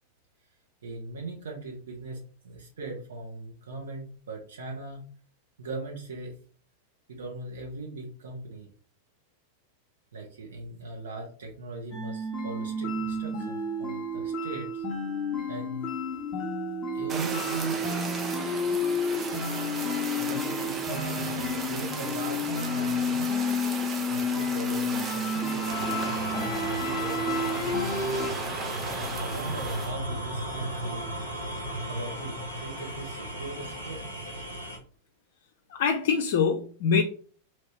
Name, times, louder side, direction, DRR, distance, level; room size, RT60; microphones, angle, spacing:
voice 1, 0.8-5.0 5.6-6.3 7.1-8.7 10.1-14.8 15.5-15.9 16.9-18.1 20.2-23.3 24.1-28.4 28.9-31.1 31.9-34.1, right 3 dB, 65° right, 1.1 m, -39 dB
sound 1, 11.9-28.3, left 2 dB, 30° left, 1.0 m, -31 dB
Fire, 17.1-29.9, right 4 dB, 20° right, 0.7 m, -36 dB
sound 2, 25.6-34.8, right 1 dB, 85° right, 1.1 m, -35 dB
voice 2, 35.7-37.0, left 6 dB, 55° left, 0.4 m, -24 dB
3.2 x 2.7 x 4.3 m
figure-of-eight pair, 90°, 0 cm